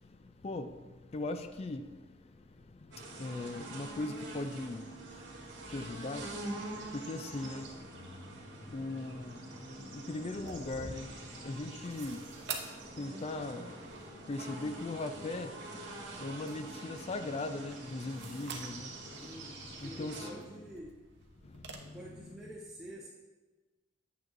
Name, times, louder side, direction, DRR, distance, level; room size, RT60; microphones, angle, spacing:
voice 1, 1.1-1.8 3.2-4.8 5.7-6.2 6.9-7.7 8.7-9.4 9.8-11.1 11.4-12.2 13.0-13.7 14.3-15.6 16.2-18.9 19.8-20.3 21.8-22.4, left 2 dB, 35° left, 8 dB, 0.4 m, -38 dB
sound 1, 2.9-20.3, right 2 dB, 90° right, 1.7 m, -46 dB
sound 2, 10.2-21.8, right 5 dB, 70° right, 0.9 m, -49 dB
voice 2, 19.0-21.0 21.8-23.1, equal, 5° right, -4 dB, 0.8 m, -49 dB
8.5 x 7.5 x 2.6 m, 1.2 s
head